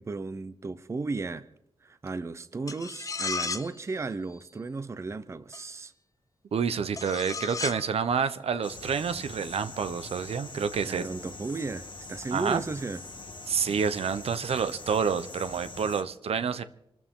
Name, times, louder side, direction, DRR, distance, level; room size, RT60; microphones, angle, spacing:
voice 1, 0.0-1.5 1.8-5.9 10.9-13.0, right 3 dB, 30° right, 13 dB, 0.6 m, -34 dB
sound 1, 2.7-3.8 5.5-5.6 7.0-7.9, left 4 dB, 35° left, 0.8 m, -34 dB
voice 2, 6.5-11.0 12.3-12.6 13.5-16.6, right 6 dB, 80° right, 12 dB, 0.9 m, -28 dB
sound 2, 8.6-16.0, left 3 dB, 55° left, 1.5 m, -43 dB
26.5 x 13.5 x 3.8 m, 0.76 s
wide cardioid pair, 170°, 10 cm